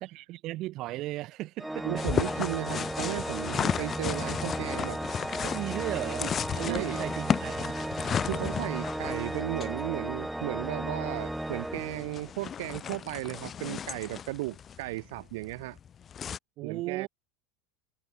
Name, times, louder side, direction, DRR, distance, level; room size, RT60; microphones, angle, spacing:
voice 1, 0.0-2.1 5.4-6.3 6.6-7.8 16.6-17.1, right 17 dB, 50° right, 2.4 m, -36 dB
Organ, 1.6-12.5, right 1 dB, 5° right, 3.6 m, -35 dB
voice 2, 1.8-5.0 6.2-6.3 6.7-7.1 8.2-15.8 16.6-17.1, right 21 dB, 65° right, 0.8 m, -35 dB
sound 1, 2.0-16.4, left 8 dB, 30° left, 2.7 m, -35 dB
hypercardioid pair, 85°, 0 cm